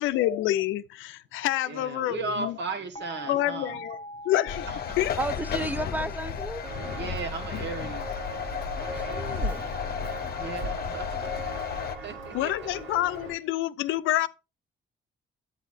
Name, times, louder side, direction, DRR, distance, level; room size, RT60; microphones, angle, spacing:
voice 1, 0.0-2.6 3.3-4.0 4.2-4.7 5.0-5.1 12.3-14.3, left 14 dB, 90° left, 0.5 m, -27 dB
voice 2, 1.7-3.8 4.7-5.1 7.0-8.2 10.4-11.3 12.0-12.7, right 4 dB, 60° right, 1.5 m, -36 dB
sound 1, 2.9-7.6, equal, 25° left, 1.1 m, -44 dB
sound 2, 4.5-12.0, left 7 dB, 50° left, 0.8 m, -33 dB
voice 3, 5.2-6.6 8.8-9.6, right 2 dB, 10° right, 0.5 m, -33 dB
Walk footsteps, 6.6-13.3, right 1 dB, 90° right, 3.5 m, -38 dB
8.1 x 8.0 x 2.6 m
cardioid pair, 90°, 20 cm